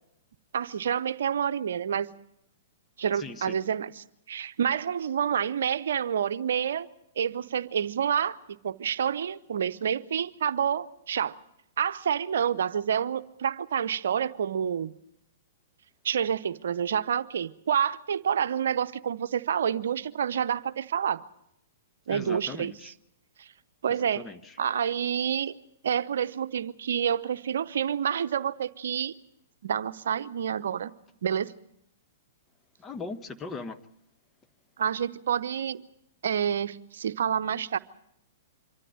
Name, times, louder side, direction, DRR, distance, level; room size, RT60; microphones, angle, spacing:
voice 1, 0.5-2.1 3.0-3.9 4.3-6.9 7.2-8.4 8.6-11.4 11.8-14.9 16.0-21.2 22.1-22.7 23.4-23.5 23.8-24.2 24.6-25.5 25.8-29.1 29.6-30.9 31.2-31.5 34.8-35.8 36.2-37.8, right 8 dB, 70° right, 12 dB, 0.7 m, -28 dB
voice 2, 3.1-3.6 22.1-22.9 23.9-24.6 32.8-33.8, left 4 dB, 20° left, 9 dB, 1.1 m, -39 dB
25.5 x 13.5 x 9.4 m, 0.77 s
hypercardioid pair, 120°, 0 cm